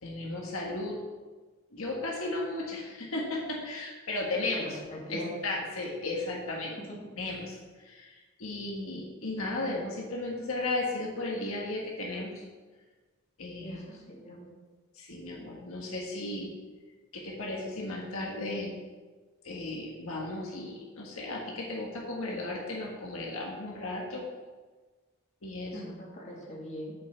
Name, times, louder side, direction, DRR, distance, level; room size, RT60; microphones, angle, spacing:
voice 1, 0.0-1.0 1.7-4.8 5.1-6.7 7.2-12.4 13.4-13.8 15.0-16.5 17.1-18.7 19.4-24.2 25.4-25.9, left 2 dB, 75° left, -2 dB, 1.6 m, -35 dB
voice 2, 4.5-5.4 13.6-14.5 25.7-26.9, equal, 35° left, -4 dB, 2.3 m, -41 dB
7.5 x 5.5 x 6.9 m, 1.3 s
head